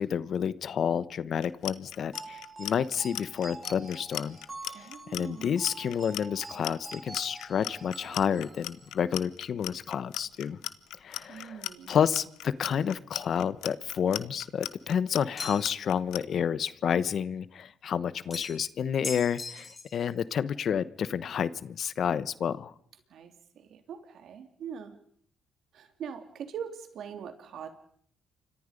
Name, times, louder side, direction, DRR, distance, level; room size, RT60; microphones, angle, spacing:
voice 1, 0.0-4.4 4.8-10.6 11.0-22.7, left 8 dB, 60° left, 16 dB, 1.0 m, -30 dB
Clock, 1.4-16.2, left 14 dB, 90° left, 1.1 m, -37 dB
sound 1, 2.1-9.0, right 3 dB, 20° right, 4.8 m, -46 dB
voice 2, 4.7-5.5 11.3-12.0 23.1-24.9 25.7-27.7, right 8 dB, 70° right, 7 dB, 3.3 m, -42 dB
sound 2, 15.4-15.9 18.3-18.7 19.0-20.0, left 4 dB, 35° left, 4.9 m, -39 dB
29.5 x 25.0 x 5.3 m, 0.62 s
cardioid pair, 90°, 0 cm